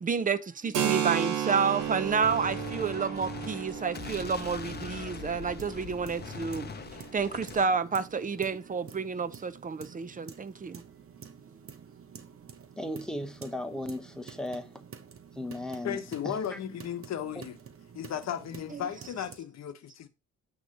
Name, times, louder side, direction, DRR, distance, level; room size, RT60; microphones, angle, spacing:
voice 1, 0.0-6.7 7.1-10.8, right 5 dB, 25° right, 0.7 m, -30 dB
Keyboard (musical), 0.7-8.1, right 9 dB, 80° right, 1.2 m, -34 dB
Gunshot gunfire, 1.8-7.7, left 6 dB, 35° left, 0.8 m, -42 dB
sound 1, 5.2-19.4, right 7 dB, 45° right, 1.1 m, -49 dB
voice 2, 12.8-14.7 15.4-16.0 16.2-16.3, left 1 dB, ahead, 1.0 m, -36 dB
voice 3, 15.8-17.6 17.9-20.1, left 9 dB, 60° left, 0.9 m, -35 dB
8.2 x 3.1 x 5.2 m
cardioid pair, 90°, 30 cm